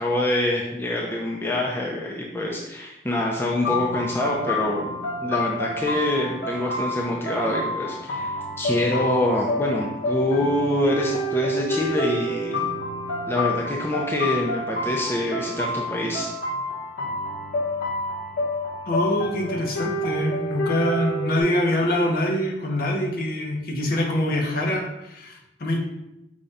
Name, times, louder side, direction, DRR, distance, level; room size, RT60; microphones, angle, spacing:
voice 1, 0.0-4.9 5.2-12.6 13.3-16.4, left 1 dB, 10° left, -2 dB, 0.4 m, -25 dB
sound 1, 3.6-21.4, left 1 dB, 70° left, 1.1 m, -29 dB
voice 2, 18.9-25.8, left 1 dB, 50° left, 1 dB, 0.7 m, -24 dB
4.9 x 2.2 x 4.0 m, 0.90 s
head